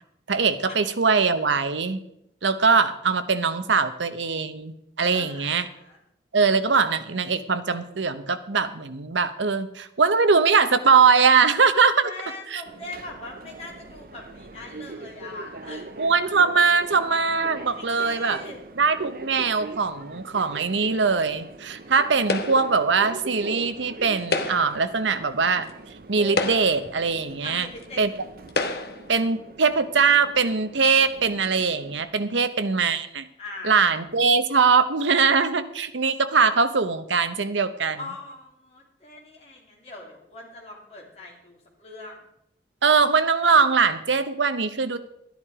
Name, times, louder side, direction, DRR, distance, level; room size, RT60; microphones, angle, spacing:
voice 1, 0.3-2.0 2.4-5.7 6.3-12.1 12.5-12.6 16.0-18.4 18.8-25.7 26.1-27.7 28.0-28.1 29.1-33.2 33.6-38.0 42.8-45.0, right 5 dB, 85° right, 11 dB, 0.9 m, -21 dB
voice 2, 5.1-6.0 12.0-16.0 17.7-18.6 27.4-28.0 33.4-33.8 38.0-42.2, left 2 dB, 35° left, -3 dB, 3.1 m, -41 dB
Subway metro underground, 12.7-32.0, right 2 dB, 50° right, 0.6 m, -42 dB
sound 1, 22.3-22.8 24.2-24.8 25.7-25.8 26.3-26.9 27.8-27.9 28.5-29.1, left 3 dB, 60° left, 1.1 m, -28 dB
12.5 x 10.5 x 4.9 m, 0.78 s
head